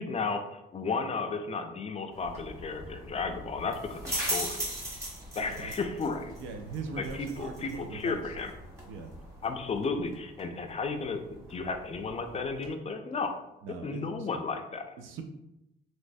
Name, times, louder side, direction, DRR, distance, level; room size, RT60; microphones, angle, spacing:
voice 1, 0.0-4.6 5.4-6.3 7.0-8.5 9.4-11.2 11.5-13.4 13.8-14.8, left 4 dB, 30° left, 6 dB, 0.4 m, -33 dB
sound 1, 2.1-12.7, right 1 dB, 15° right, 1.3 m, -40 dB
voice 2, 5.5-5.9 6.4-8.2 8.9-9.1 13.6-14.3 15.0-15.2, right 4 dB, 90° right, 5 dB, 0.5 m, -41 dB
3.1 x 3.0 x 2.6 m, 0.89 s
cardioid pair, 90°, 20 cm